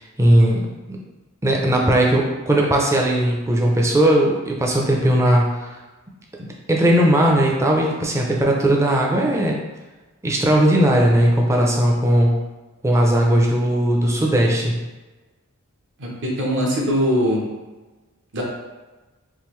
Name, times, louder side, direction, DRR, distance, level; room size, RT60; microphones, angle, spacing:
voice 1, 0.2-0.6 0.9-1.0 1.4-5.7 6.4-9.6 10.2-12.4 12.8-14.8, right 1 dB, 15° right, -1 dB, 0.4 m, -18 dB
voice 2, 16.0-17.4 18.3-18.4, equal, 55° right, -2 dB, 0.8 m, -21 dB
3.6 x 2.6 x 3.1 m, 1.2 s
head